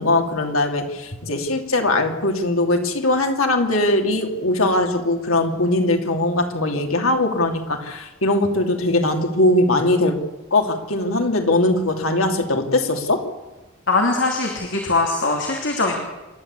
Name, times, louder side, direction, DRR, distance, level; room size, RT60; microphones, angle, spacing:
voice 1, 0.0-10.2 10.5-13.3, left 2 dB, 90° left, 3 dB, 2.9 m, -20 dB
voice 2, 13.9-16.0, left 3 dB, 60° left, 1 dB, 2.8 m, -21 dB
27.5 x 12.0 x 8.4 m, 1.1 s
head